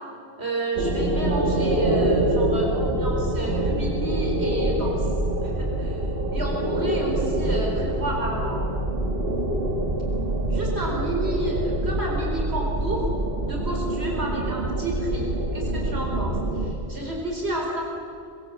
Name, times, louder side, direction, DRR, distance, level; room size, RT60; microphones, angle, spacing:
voice 1, 0.4-5.1 5.4-6.0 6.3-8.8 10.5-13.1 13.4-15.3 15.5-17.8, right 1 dB, 75° right, -1 dB, 4.6 m, -31 dB
sound 1, 0.8-16.7, right 1 dB, 60° right, 2.1 m, -25 dB
30.0 x 23.5 x 7.5 m, 2.7 s
omnidirectional pair, 1.1 m